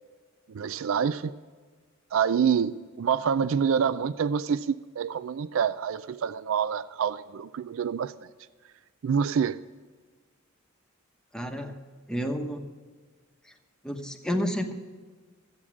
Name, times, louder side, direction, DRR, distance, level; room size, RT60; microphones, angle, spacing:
voice 1, 0.5-1.4 2.1-8.1 9.0-9.6, right 7 dB, 70° right, 0.4 m, -27 dB
voice 2, 11.3-11.8 12.1-12.6 13.4-13.5 13.8-14.7, equal, 5° left, 1.0 m, -30 dB
13.0 x 8.5 x 6.0 m
head